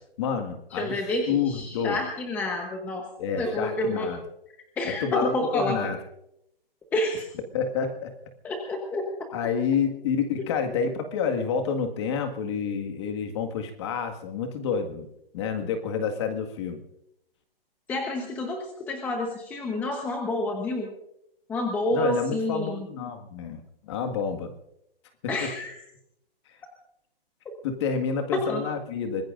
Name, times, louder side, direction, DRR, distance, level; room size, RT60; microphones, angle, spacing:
voice 1, 0.2-1.0 1.3-2.0 3.2-4.2 5.0-6.0 7.5-8.1 9.3-15.1 15.3-16.8 21.9-24.5 25.4-25.5 27.6-29.2, left 6 dB, 30° left, 5 dB, 1.9 m, -28 dB
voice 2, 0.7-3.0 3.4-4.1 4.8-5.9 6.9-7.3 8.4-9.1 17.9-20.9 21.5-22.9 25.3-25.8 28.3-28.6, left 2 dB, 5° left, 2 dB, 1.0 m, -29 dB
25.0 x 20.5 x 2.6 m, 0.80 s
hypercardioid pair, 160°, 29 cm